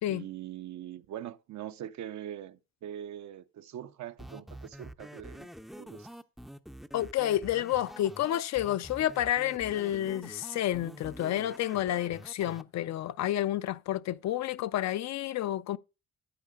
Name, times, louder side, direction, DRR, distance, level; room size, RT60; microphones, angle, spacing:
voice 1, 0.1-5.5 5.7-6.1, right 11 dB, 70° right, 0.7 m, -42 dB
sound 1, 4.2-12.6, equal, ahead, 0.5 m, -47 dB
voice 2, 6.9-15.8, left 13 dB, 65° left, 0.5 m, -30 dB
12.5 x 8.4 x 2.3 m
cardioid pair, 90°, 30 cm